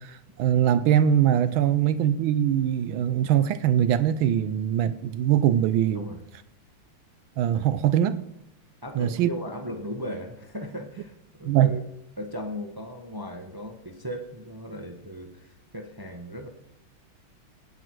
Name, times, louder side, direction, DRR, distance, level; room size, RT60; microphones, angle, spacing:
voice 1, 0.0-6.0 7.4-8.2 9.0-9.3 11.5-11.7, right 10 dB, 75° right, 1.3 m, -22 dB
voice 2, 8.8-11.1 11.4-11.8 12.2-16.5, equal, 30° right, 0.4 m, -37 dB
17.5 x 6.3 x 4.6 m
omnidirectional pair, 2.4 m